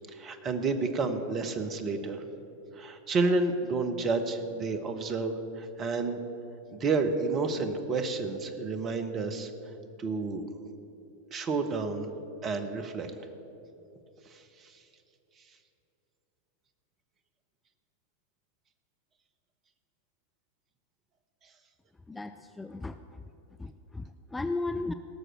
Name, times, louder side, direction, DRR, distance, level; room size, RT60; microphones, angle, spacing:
voice 1, 0.1-2.2 2.7-6.2 6.7-9.5 10.0-10.5 11.3-12.1 12.4-13.1 14.3-14.7, right 3 dB, 30° right, 8 dB, 1.1 m, -30 dB
voice 2, 22.1-23.2 23.6-24.9, left 3 dB, 10° left, 9 dB, 0.4 m, -35 dB
17.5 x 6.5 x 7.6 m, 3.0 s
figure-of-eight pair, 90°, 0 cm